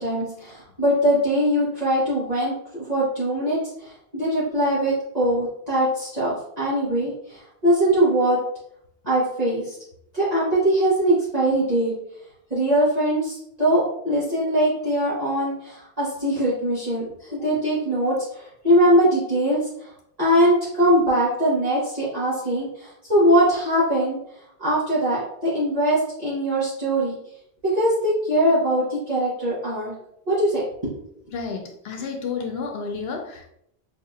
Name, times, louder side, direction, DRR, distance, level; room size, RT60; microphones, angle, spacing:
voice 1, 0.0-8.4 9.0-9.8 10.1-11.9 12.5-19.9 20.2-24.2 24.6-27.2 27.6-29.9 30.3-30.6, right 1 dB, 40° right, -10 dB, 1.4 m, -22 dB
voice 2, 31.3-33.5, left 5 dB, 80° left, 3 dB, 0.8 m, -31 dB
5.0 x 2.8 x 2.4 m, 0.72 s
omnidirectional pair, 1.0 m